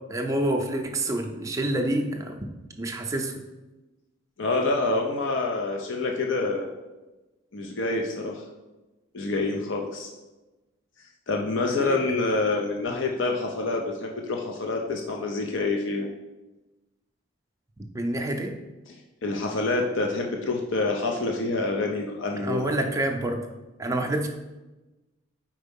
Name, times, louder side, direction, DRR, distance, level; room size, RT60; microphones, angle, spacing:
voice 1, 0.1-2.4 2.8-3.3 11.8-12.0 12.9-13.1 17.9-18.5 22.4-23.4 23.8-24.3, right 1 dB, 15° right, 2 dB, 0.5 m, -27 dB
voice 2, 4.4-6.7 7.5-8.5 9.1-10.1 11.3-16.1 19.2-22.7, left 3 dB, 65° left, 2 dB, 0.6 m, -27 dB
4.5 x 4.5 x 5.3 m, 1.1 s
head